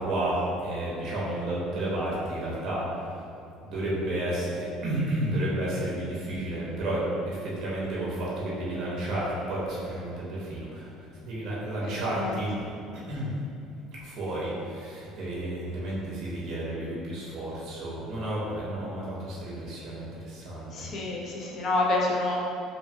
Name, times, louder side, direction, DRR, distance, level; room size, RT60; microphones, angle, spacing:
voice 1, 0.0-2.8 3.7-7.0 7.3-10.9 11.2-12.5 12.9-13.3 14.0-20.9, right 1 dB, 50° right, -6 dB, 0.6 m, -31 dB
voice 2, 11.8-12.4 20.7-22.4, left 2 dB, 45° left, -2 dB, 0.4 m, -28 dB
2.5 x 2.2 x 2.6 m, 2.6 s
cardioid pair, 130°, 0 cm